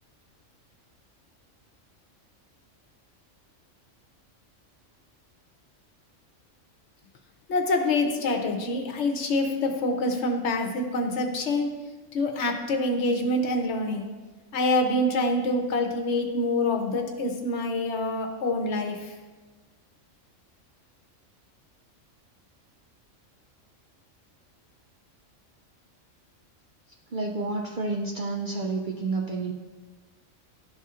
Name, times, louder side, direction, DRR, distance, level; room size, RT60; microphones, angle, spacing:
voice 1, 7.5-11.7 12.1-14.1 14.5-19.1, left 2 dB, 65° left, 3 dB, 1.0 m, -26 dB
voice 2, 27.1-29.5, right 3 dB, 60° right, 1 dB, 0.5 m, -30 dB
12.0 x 4.2 x 2.4 m, 1.3 s
omnidirectional pair, 1.4 m